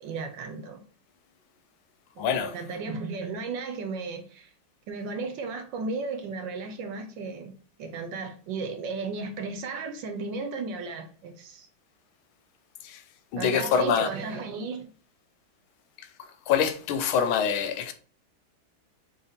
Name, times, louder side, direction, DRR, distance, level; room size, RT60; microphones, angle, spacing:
voice 1, 0.0-0.8 2.2-4.5 4.9-7.5 7.8-11.7 13.4-14.9, right 4 dB, 70° right, 1.3 m, -34 dB
voice 2, 2.2-2.6 12.8-13.0 13.3-14.1 16.5-17.9, left 7 dB, 90° left, 1.4 m, -25 dB
4.0 x 2.9 x 4.2 m
omnidirectional pair, 2.2 m